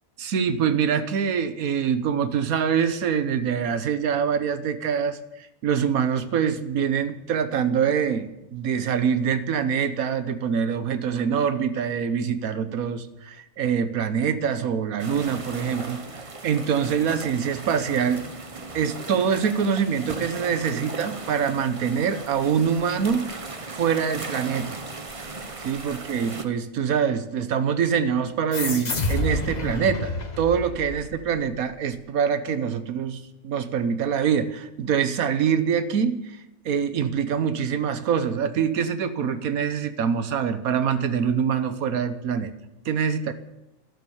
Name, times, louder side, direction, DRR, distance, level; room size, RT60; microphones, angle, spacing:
voice 1, 0.2-18.2 18.7-23.3 23.7-24.8 25.6-36.4 36.6-42.5 42.8-43.3, right 7 dB, 70° right, 12 dB, 1.4 m, -25 dB
sound 1, 15.0-26.4, right 3 dB, 25° right, 0.9 m, -37 dB
sound 2, 28.5-31.6, left 2 dB, 30° left, 1.2 m, -29 dB
12.5 x 12.0 x 7.2 m, 0.96 s
omnidirectional pair, 1.6 m